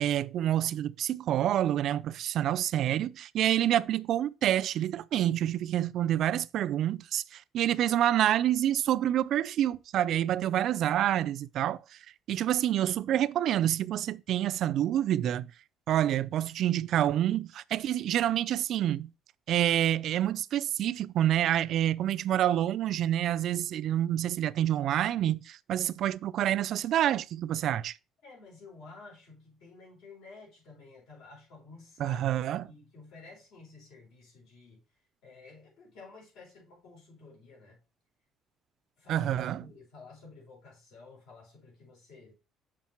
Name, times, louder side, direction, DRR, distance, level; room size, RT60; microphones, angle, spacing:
voice 1, 0.0-11.8 12.3-15.5 15.9-19.1 19.5-27.9 32.0-32.7 39.1-39.6, right 11 dB, 55° right, 0.3 m, -27 dB
voice 2, 28.2-34.8 35.2-37.8 39.0-42.3, left 3 dB, 75° left, 4.6 m, -52 dB
7.2 x 5.0 x 4.4 m
cardioid pair, 145°, 0 cm